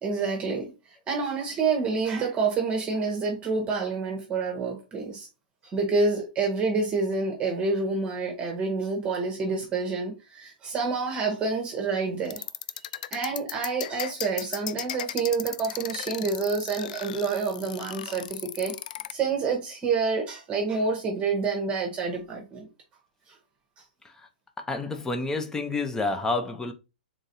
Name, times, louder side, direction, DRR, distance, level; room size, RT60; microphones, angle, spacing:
voice 1, 0.0-5.3 5.7-12.4 13.1-18.7 19.1-22.7 23.3-23.4, right 4 dB, 20° right, 1.1 m, -28 dB
sound 1, 12.3-19.1, left 11 dB, 60° left, 0.3 m, -36 dB
voice 2, 24.6-26.7, left 3 dB, 10° left, 0.7 m, -29 dB
3.9 x 3.7 x 2.7 m
hypercardioid pair, 120°, 5 cm